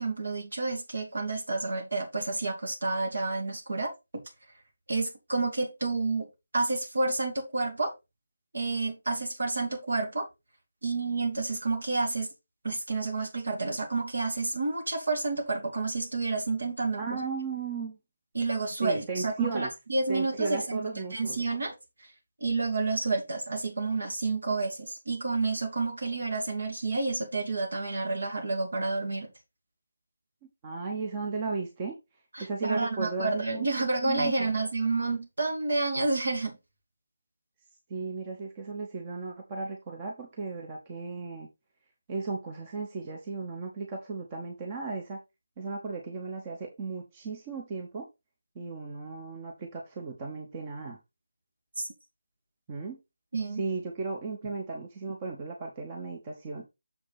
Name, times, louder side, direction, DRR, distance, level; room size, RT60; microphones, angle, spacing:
voice 1, 0.0-3.9 4.9-6.3 6.5-7.9 8.5-10.3 10.8-12.3 12.6-17.2 18.3-20.8 21.1-21.7 22.4-29.3 32.3-36.6 51.8-51.9 53.3-53.6, right 3 dB, 60° right, 2.7 m, -29 dB
voice 2, 17.0-18.0 18.8-19.7 20.1-21.4 30.4-32.0 32.4-33.6 34.0-34.5 37.9-41.5 42.1-45.2 45.6-48.1 48.5-51.0 52.7-53.0 53.6-56.7, right 4 dB, 20° right, 1.2 m, -35 dB
7.0 x 5.1 x 4.2 m
figure-of-eight pair, 155°, 0 cm